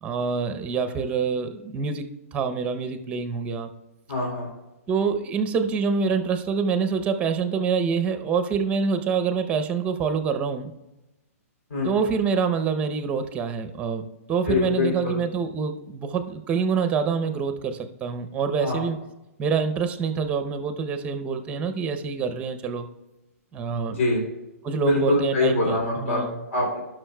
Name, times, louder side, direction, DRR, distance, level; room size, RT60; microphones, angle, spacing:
voice 1, 0.0-2.1 2.3-3.7 4.9-10.7 11.8-19.0 19.4-22.9 23.5-24.0 24.6-26.4, right 5 dB, 15° right, 9 dB, 0.6 m, -26 dB
voice 2, 4.1-4.5 11.7-11.9 14.5-15.2 18.6-18.8 23.9-24.2 24.8-26.2 26.5-26.8, left 2 dB, 60° left, -2 dB, 3.0 m, -24 dB
16.0 x 6.0 x 2.2 m, 0.99 s
hypercardioid pair, 155°, 8 cm